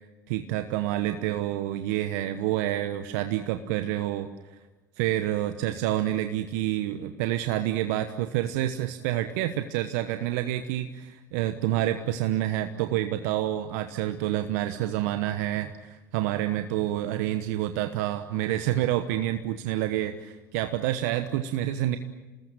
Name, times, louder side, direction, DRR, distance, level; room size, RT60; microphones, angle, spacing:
voice 1, 0.3-4.6 5.0-22.0, right 13 dB, 70° right, 9 dB, 1.1 m, -28 dB
28.0 x 20.0 x 8.9 m, 1.2 s
hypercardioid pair, 70°, 9 cm